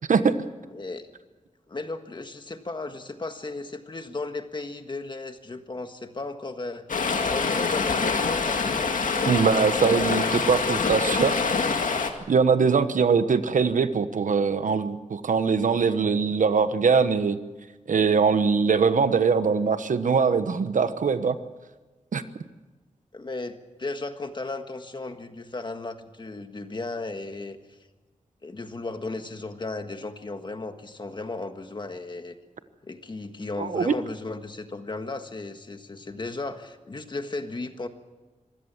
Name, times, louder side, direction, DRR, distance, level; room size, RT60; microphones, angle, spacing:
voice 1, 0.7-1.1 1.7-9.1 23.1-27.8 28.4-32.3 32.8-37.9, left 3 dB, 35° left, 7 dB, 1.6 m, -35 dB
Stream, 6.9-12.1, left 4 dB, 80° left, 2.1 m, -25 dB
voice 2, 9.3-11.4 12.3-17.4 17.9-21.4 22.1-22.2 33.6-33.9, right 5 dB, 75° right, 11 dB, 1.1 m, -22 dB
25.5 x 16.0 x 7.3 m, 1.2 s
wide cardioid pair, 130°, 13 cm